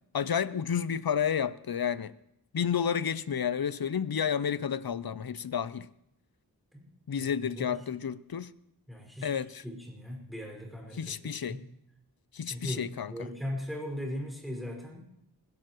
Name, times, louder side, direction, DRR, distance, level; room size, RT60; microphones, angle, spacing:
voice 1, 0.1-2.1 2.5-5.9 7.1-8.5 9.2-9.6 10.9-11.6 12.3-13.3, left 7 dB, 65° left, 0.6 m, -31 dB
voice 2, 7.2-7.8 8.9-11.7 12.4-15.0, left 1 dB, ahead, 5.3 m, -39 dB
20.5 x 16.5 x 3.1 m
wide cardioid pair, 55°, 40 cm